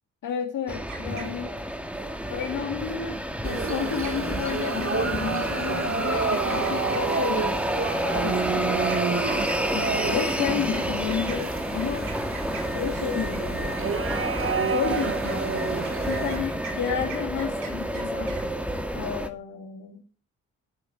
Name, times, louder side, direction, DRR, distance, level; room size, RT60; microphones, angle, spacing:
voice 1, 0.2-1.5 2.3-7.7 8.2-8.7 9.7-12.1 12.7-13.8 14.6-18.4 18.9-20.0, left 8 dB, 70° left, 2 dB, 1.8 m, -31 dB
sound 1, 0.7-19.3, equal, 5° right, 1.9 m, -29 dB
sound 2, 0.7-1.7 3.7-3.8 4.0-4.4 4.8-5.1 5.4-5.6 6.0-7.4 8.3-13.5 13.9-18.4, right 6 dB, 75° right, 3.5 m, -42 dB
sound 3, 3.4-16.4, right 6 dB, 40° right, 1.1 m, -30 dB
10.5 x 9.3 x 4.5 m, 0.36 s
hypercardioid pair, 45°, 33 cm